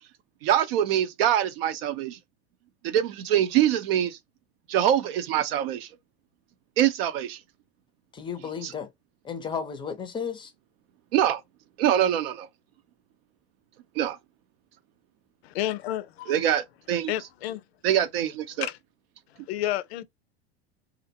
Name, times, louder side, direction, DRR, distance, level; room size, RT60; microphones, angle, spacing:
voice 1, 0.4-2.2 2.8-4.2 4.7-5.9 6.8-7.4 8.6-8.7 11.1-11.4 11.8-12.5 14.0-14.2 16.3-17.1 17.8-18.7, right 11 dB, 65° right, 0.6 m, -24 dB
voice 2, 8.1-8.9 9.2-10.5, left 6 dB, 15° left, 0.5 m, -33 dB
voice 3, 15.4-16.4 17.1-17.6 18.6-18.8 19.3-20.0, left 13 dB, 70° left, 0.5 m, -31 dB
2.5 x 2.1 x 2.7 m
hypercardioid pair, 105°, 32 cm